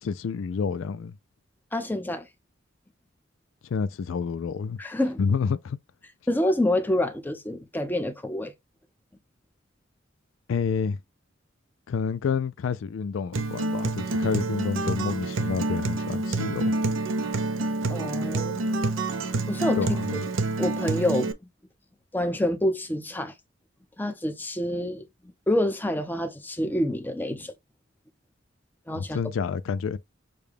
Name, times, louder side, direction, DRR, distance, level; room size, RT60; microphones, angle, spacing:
voice 1, 0.0-1.2 3.7-4.8 5.2-5.8 10.5-11.0 11.9-16.7 19.8-20.3 28.9-30.0, left 5 dB, 85° left, 0.4 m, -29 dB
voice 2, 1.7-2.3 4.8-5.2 6.3-8.5 17.9-18.6 19.5-20.0 20.6-21.3 22.1-23.3 24.0-25.0 25.5-27.5 28.9-29.2, left 1 dB, 10° left, 0.7 m, -27 dB
Acoustic guitar, 13.3-21.3, right 2 dB, 80° right, 0.6 m, -28 dB
6.6 x 2.2 x 3.4 m
head